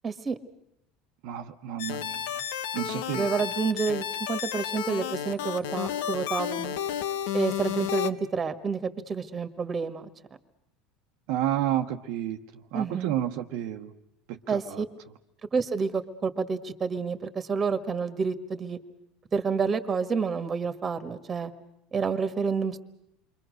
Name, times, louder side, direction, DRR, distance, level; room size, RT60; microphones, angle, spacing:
voice 1, 0.0-0.4 3.1-6.8 7.3-10.1 12.7-13.1 14.5-14.8 15.5-18.8 19.3-21.5 21.9-22.8, right 5 dB, 30° right, 10 dB, 1.6 m, -29 dB
voice 2, 1.2-2.4 2.7-3.3 11.3-12.4 12.7-13.9 14.3-14.8, right 12 dB, 70° right, 4 dB, 1.1 m, -31 dB
sound 1, 1.8-8.1, left 10 dB, 80° left, 0.9 m, -32 dB
28.5 x 22.5 x 6.5 m, 0.81 s
supercardioid pair, 100°, 0 cm